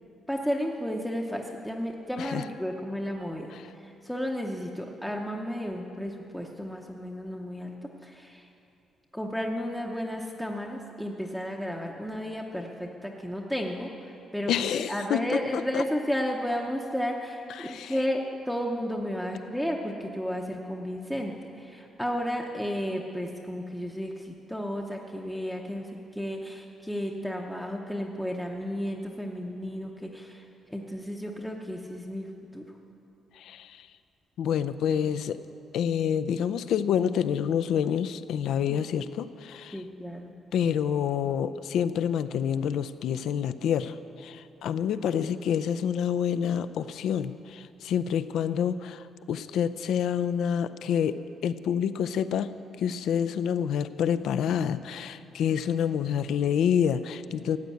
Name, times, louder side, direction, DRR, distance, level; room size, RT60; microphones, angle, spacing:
voice 1, 0.3-8.5 9.1-32.3 32.5-32.6 38.7-38.8 39.7-40.3, equal, ahead, 0 dB, 0.7 m, -33 dB
voice 2, 14.5-15.2 15.5-15.8 17.6-18.0 33.3-33.9 34.4-35.4 35.7-39.8 40.5-52.5 52.8-57.6, left 8 dB, 70° left, 13 dB, 0.5 m, -28 dB
14.5 x 9.1 x 8.4 m, 2.7 s
cardioid pair, 170°, 0 cm